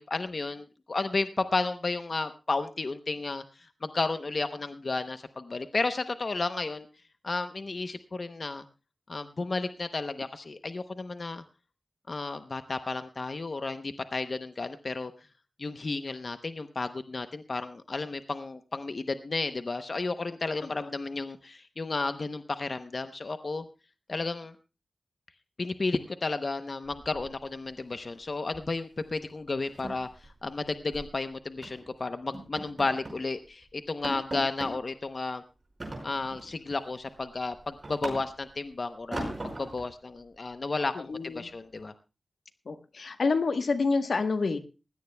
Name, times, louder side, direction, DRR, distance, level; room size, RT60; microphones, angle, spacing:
voice 1, 0.0-3.4 3.8-6.9 7.2-8.6 9.1-11.4 12.1-15.1 15.6-23.7 24.1-24.5 25.6-35.4 36.0-39.3 39.6-41.9, left 3 dB, 50° left, 9 dB, 0.7 m, -33 dB
sound 1, 26.9-27.7 28.0-28.2 28.5-28.7 29.0-29.1 29.5-31.1 31.6-31.9 32.3-33.3 33.6-33.7 34.0-34.8 35.8-36.5 37.0-38.6 39.1-39.9, right 1 dB, 40° right, 5.1 m, -39 dB
voice 2, 40.9-41.5 42.7-44.6, left 4 dB, 80° left, 9 dB, 1.1 m, -28 dB
20.0 x 16.5 x 2.2 m, 0.31 s
wide cardioid pair, 90°, 0 cm